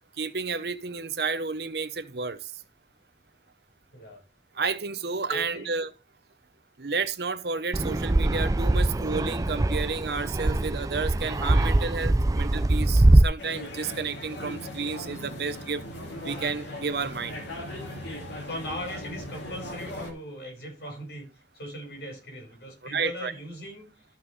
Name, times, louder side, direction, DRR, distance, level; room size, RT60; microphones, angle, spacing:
voice 1, 0.2-2.5 4.5-5.9 6.8-15.8 16.2-17.4 22.8-23.3, right 4 dB, 70° right, 0.8 m, -31 dB
voice 2, 5.3-5.7 18.4-24.0, left 1 dB, 70° left, 5.5 m, -39 dB
Fixed-wing aircraft airplane, 7.7-13.2, right 1 dB, 20° right, 0.3 m, -22 dB
sound 1, 13.4-20.1, left 1 dB, 90° left, 2.9 m, -38 dB
14.0 x 5.8 x 3.2 m
head